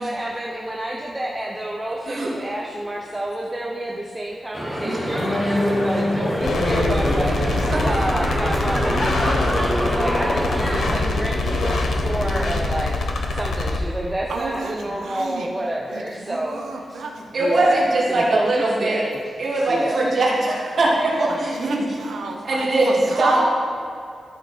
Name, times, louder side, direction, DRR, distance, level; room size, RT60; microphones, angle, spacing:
voice 1, 0.0-16.6 16.9-17.0 17.4-19.2 19.7-20.1, right 1 dB, 10° right, -2 dB, 0.6 m, -29 dB
sound 1, 4.5-11.0, equal, 5° left, 1.1 m, -26 dB
sound 2, 5.1-12.7, left 1 dB, 85° left, 2.1 m, -28 dB
sound 3, 6.4-13.8, left 2 dB, 65° left, 0.8 m, -24 dB
voice 2, 7.7-8.1 17.3-19.0 19.4-21.8 22.5-23.4, right 2 dB, 45° right, -7 dB, 2.5 m, -21 dB
voice 3, 14.3-15.5 15.9-17.8 19.4-19.9 21.3-23.4, right 4 dB, 85° right, 2 dB, 1.1 m, -33 dB
14.0 x 5.2 x 4.4 m, 2.4 s
wide cardioid pair, 180°, 0 cm